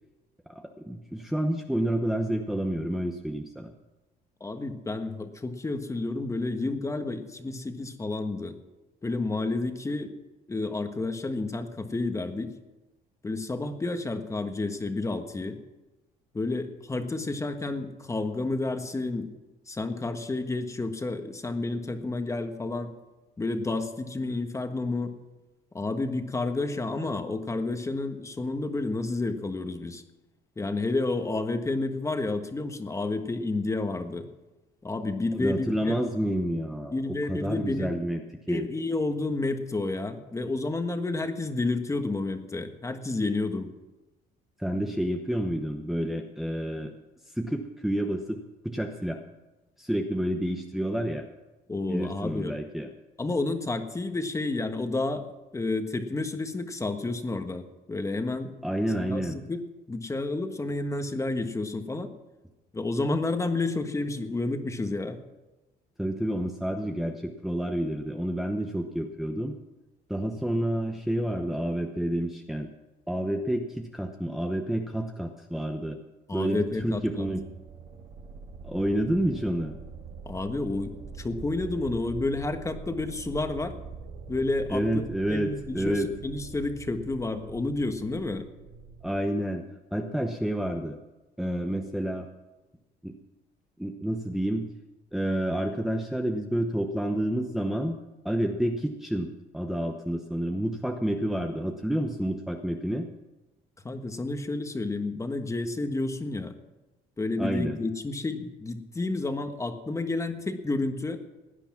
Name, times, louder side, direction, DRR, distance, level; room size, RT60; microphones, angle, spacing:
voice 1, 0.5-3.7 35.3-38.2 38.5-38.6 44.6-46.9 47.3-48.4 48.6-49.2 49.8-51.3 51.9-52.9 58.6-59.4 66.0-69.6 70.1-72.7 73.1-76.0 76.3-77.5 78.6-79.7 84.7-86.1 89.0-89.6 89.9-91.0 91.4-92.3 93.0-93.1 93.8-94.7 95.1-98.0 98.2-103.1 107.4-107.8, right 1 dB, ahead, 2 dB, 0.9 m, -29 dB
voice 2, 4.4-8.6 9.0-10.1 10.5-12.5 13.2-15.6 16.3-19.3 19.7-22.9 23.4-25.1 25.7-30.0 30.6-34.3 34.8-36.0 36.9-37.9 38.5-43.7 51.7-52.5 53.2-55.2 55.5-58.5 59.0-59.6 59.9-62.1 62.7-65.2 76.3-77.3 80.2-80.9 81.2-83.8 84.3-88.4 103.8-106.5 107.2-111.2, left 2 dB, 15° left, 7 dB, 1.4 m, -30 dB
sound 1, 76.5-89.2, right 5 dB, 55° right, 2.1 m, -44 dB
16.5 x 9.9 x 6.0 m, 1.1 s
cardioid pair, 110°, 17 cm